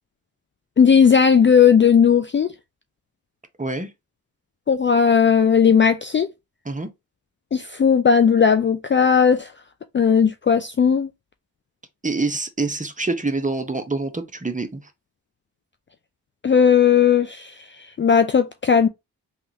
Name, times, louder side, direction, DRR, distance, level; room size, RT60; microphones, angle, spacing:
voice 1, 0.8-2.5 4.7-6.3 7.5-9.5 9.9-11.1 16.4-18.9, left 7 dB, 30° left, 0.4 m, -16 dB
voice 2, 3.6-3.9 6.7-6.9 12.0-14.8, right 3 dB, 20° right, 0.9 m, -26 dB
3.5 x 2.4 x 2.8 m
supercardioid pair, 40°, 40 cm